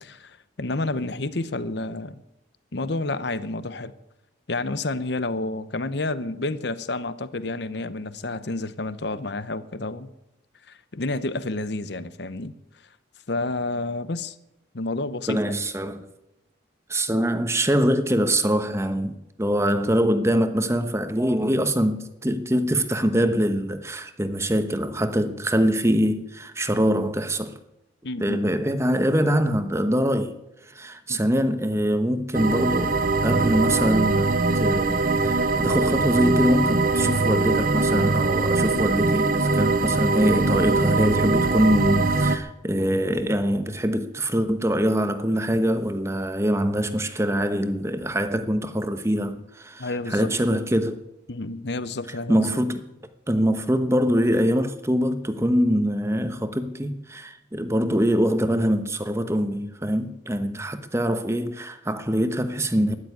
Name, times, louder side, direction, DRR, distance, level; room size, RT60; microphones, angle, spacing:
voice 1, 0.0-2.2 2.7-3.9 4.5-10.1 10.7-12.5 13.3-14.4 14.7-15.6 28.0-28.5 31.1-31.2 49.8-50.6 51.3-52.5, left 2 dB, 60° left, 0.9 m, -30 dB
voice 2, 15.3-16.1 16.9-27.6 28.2-30.3 30.7-33.0 33.2-51.0 52.3-52.8 53.3-62.9, equal, 15° right, 1.0 m, -24 dB
sound 1, 32.3-42.4, right 3 dB, 45° right, 0.8 m, -22 dB
13.5 x 10.5 x 9.5 m
head